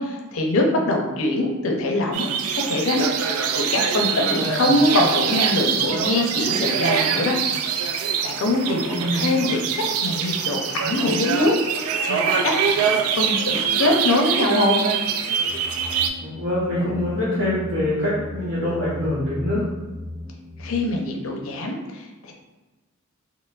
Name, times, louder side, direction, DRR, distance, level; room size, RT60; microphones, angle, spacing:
voice 1, 0.0-3.1 3.5-7.4 8.2-14.8 20.6-22.3, left 2 dB, 70° left, 2 dB, 0.5 m, -23 dB
sound 1, 2.1-16.1, right 7 dB, 85° right, 0.3 m, -24 dB
voice 2, 4.3-4.7 8.9-9.2 16.2-19.6, left 1 dB, 60° right, -11 dB, 0.9 m, -24 dB
sound 2, 15.5-20.8, left 1 dB, 5° right, 0.3 m, -37 dB
4.3 x 2.0 x 2.4 m, 1.2 s
head